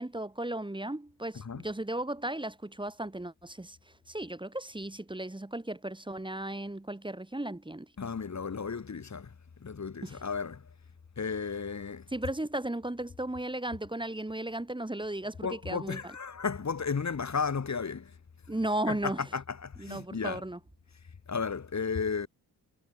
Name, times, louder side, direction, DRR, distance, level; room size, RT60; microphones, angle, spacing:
voice 1, 0.0-3.8 4.1-7.9 10.0-10.2 12.1-16.1 18.5-19.2 19.8-20.6, right 1 dB, 10° right, 2.8 m, -35 dB
voice 2, 8.0-9.3 9.6-10.6 11.2-12.0 15.4-18.1 18.9-20.4 21.3-22.3, left 5 dB, 45° left, 2.9 m, -34 dB
cardioid pair, 60°, 40 cm